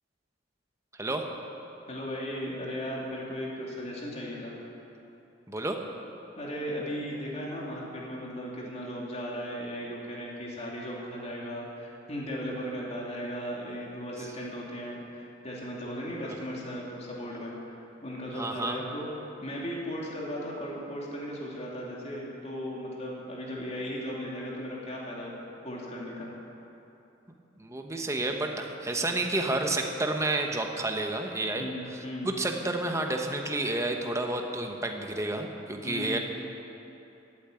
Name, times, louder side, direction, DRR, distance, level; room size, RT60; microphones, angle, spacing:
voice 1, 1.9-4.5 6.4-19.1 19.4-25.3 25.6-26.3 31.6-32.3 35.8-36.2, equal, 35° left, -4 dB, 2.9 m, -36 dB
voice 2, 5.5-5.8 18.3-18.8 27.6-31.7 31.9-36.2, right 2 dB, 15° right, 3 dB, 1.1 m, -30 dB
14.5 x 8.8 x 9.3 m, 2.9 s
head